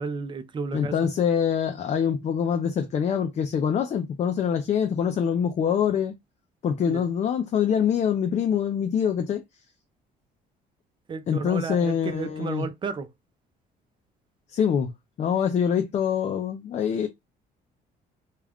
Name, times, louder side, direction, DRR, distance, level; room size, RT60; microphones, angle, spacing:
voice 1, 0.0-1.0 6.9-7.0 11.1-13.1, right 5 dB, 30° right, 0.5 m, -32 dB
voice 2, 0.7-6.1 6.6-9.4 11.3-12.7 14.5-14.9 15.2-17.1, left 8 dB, 40° left, 0.5 m, -24 dB
2.3 x 2.3 x 3.4 m
cardioid pair, 110°, 17 cm